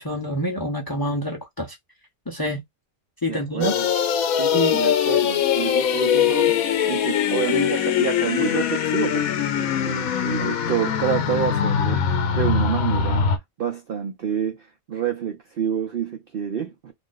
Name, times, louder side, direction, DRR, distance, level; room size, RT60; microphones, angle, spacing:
voice 1, 0.0-1.8 2.3-2.6 3.2-3.7 4.5-4.8, left 1 dB, 35° left, 0.3 m, -26 dB
voice 2, 3.3-3.9 4.3-13.3 13.6-16.9, right 8 dB, 55° right, 0.6 m, -28 dB
sound 1, 3.6-13.4, left 8 dB, 85° left, 1.1 m, -22 dB
2.5 x 2.5 x 3.6 m
omnidirectional pair, 1.5 m